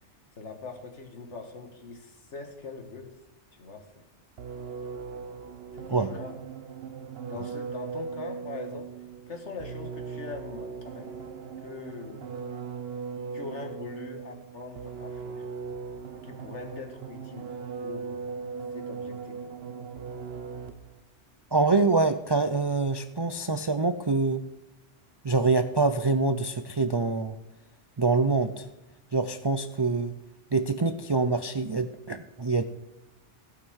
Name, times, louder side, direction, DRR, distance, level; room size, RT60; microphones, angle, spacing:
voice 1, 0.4-3.2 3.5-4.1 5.7-6.3 7.2-8.9 9.3-11.2 11.6-12.3 13.3-15.5 16.2-17.5 17.8-18.2 18.7-19.6, left 3 dB, 75° left, 5 dB, 1.9 m, -42 dB
sound 1, 4.4-21.0, right 5 dB, 60° right, 1.0 m, -39 dB
voice 2, 21.5-24.4 25.2-27.3 28.0-28.7 29.1-30.1 30.5-32.6, right 3 dB, 45° right, 9 dB, 0.3 m, -25 dB
16.0 x 5.8 x 6.3 m, 0.92 s
omnidirectional pair, 1.2 m